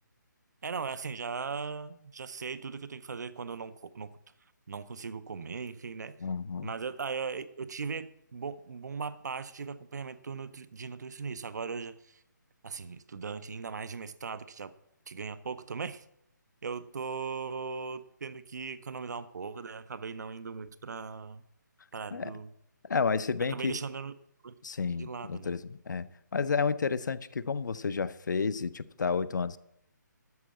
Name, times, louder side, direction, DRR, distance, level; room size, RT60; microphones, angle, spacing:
voice 1, 0.6-4.2 4.7-6.2 6.6-12.2 12.6-14.7 15.1-16.0 16.6-21.4 21.9-22.5 23.5-24.1 24.4-24.5 25.0-25.5, right 5 dB, 60° right, 15 dB, 0.6 m, -38 dB
voice 2, 6.2-6.7 22.1-22.3 22.8-23.8 24.6-29.6, left 5 dB, 70° left, 15 dB, 0.6 m, -31 dB
13.0 x 4.6 x 7.5 m, 0.77 s
hypercardioid pair, 175°, 10 cm